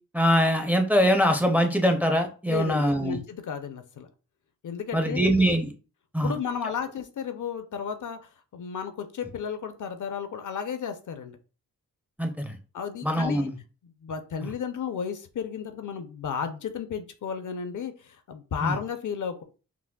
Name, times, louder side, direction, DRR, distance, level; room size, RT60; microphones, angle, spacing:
voice 1, 0.1-3.2 4.9-5.7 6.1-6.3 12.2-12.6 13.0-13.5 18.6-18.7, equal, 5° right, 4 dB, 0.5 m, -23 dB
voice 2, 2.5-4.1 4.6-5.2 6.2-8.2 8.5-11.4 12.7-13.5 14.0-19.4, left 7 dB, 60° left, 8 dB, 0.6 m, -33 dB
5.9 x 2.0 x 2.2 m, 0.35 s
wide cardioid pair, 100°, 35 cm